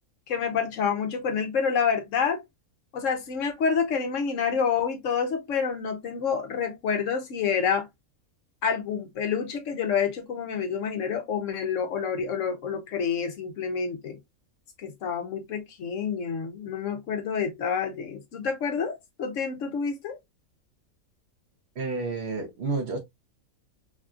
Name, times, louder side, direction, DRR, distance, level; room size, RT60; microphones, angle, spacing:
voice 1, 0.3-2.4 2.9-7.9 8.6-14.2 14.8-20.2, left 6 dB, 70° left, 0.9 m, -28 dB
voice 2, 21.7-23.0, right 3 dB, 55° right, 1.0 m, -30 dB
3.4 x 2.6 x 2.3 m
omnidirectional pair, 1.5 m